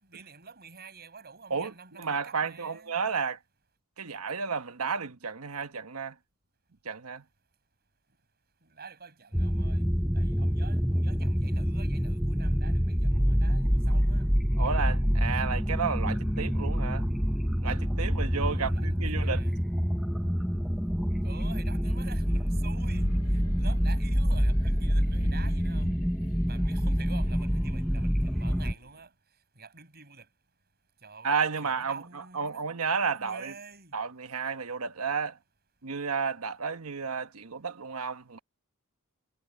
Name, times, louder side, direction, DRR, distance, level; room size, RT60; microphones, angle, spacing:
voice 1, 0.0-3.0 8.6-9.9 10.1-14.3 18.4-19.6 21.2-26.0 26.5-29.1 29.6-30.3 31.0-31.3 31.6-32.7 33.1-33.9, right 5 dB, 45° right, 7.1 m, -48 dB
voice 2, 2.0-3.4 4.0-6.1 6.8-7.2 14.6-17.1 17.6-19.4 31.2-33.5 33.9-35.4 35.8-38.4, right 5 dB, 85° right, 1.3 m, -32 dB
sound 1, 9.3-28.7, equal, ahead, 0.7 m, -27 dB
sound 2, 22.6-29.0, equal, 75° left, 2.6 m, -43 dB
head